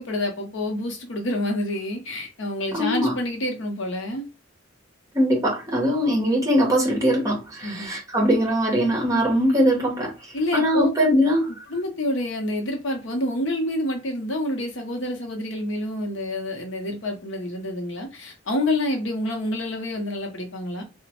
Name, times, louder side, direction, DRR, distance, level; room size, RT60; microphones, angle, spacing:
voice 1, 0.0-4.3 7.6-7.9 10.3-10.9 11.5-20.8, left 1 dB, 65° left, 0.7 m, -28 dB
voice 2, 2.7-3.1 5.1-10.1 10.5-11.5, equal, 15° right, 0.9 m, -21 dB
2.9 x 2.1 x 2.8 m
head